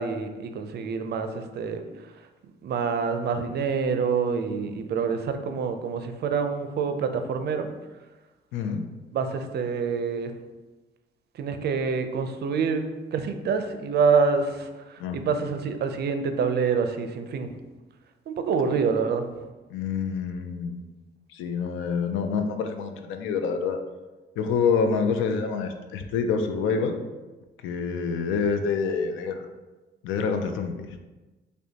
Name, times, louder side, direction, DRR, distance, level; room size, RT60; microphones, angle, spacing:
voice 1, 0.0-1.8 2.6-7.7 8.7-8.8 9.1-10.3 11.4-12.8 13.1-17.5 18.3-19.2, right 5 dB, 55° right, 7 dB, 0.4 m, -26 dB
voice 2, 8.5-8.9 15.0-15.2 19.7-20.9 21.3-23.8 24.4-27.0 27.6-29.5 30.0-31.0, left 5 dB, 85° left, 7 dB, 0.4 m, -27 dB
4.9 x 2.2 x 2.8 m, 1.2 s
cardioid pair, 90°, 20 cm